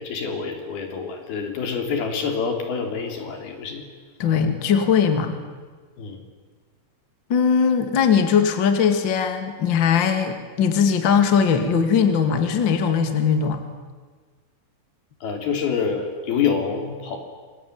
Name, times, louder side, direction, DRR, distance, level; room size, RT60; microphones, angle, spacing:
voice 1, 0.0-3.8 6.0-6.2 15.2-17.2, left 6 dB, 75° left, 4 dB, 5.3 m, -26 dB
voice 2, 4.2-5.4 7.3-13.6, left 6 dB, 35° left, 7 dB, 2.2 m, -20 dB
27.5 x 22.5 x 9.4 m, 1.4 s
omnidirectional pair, 4.5 m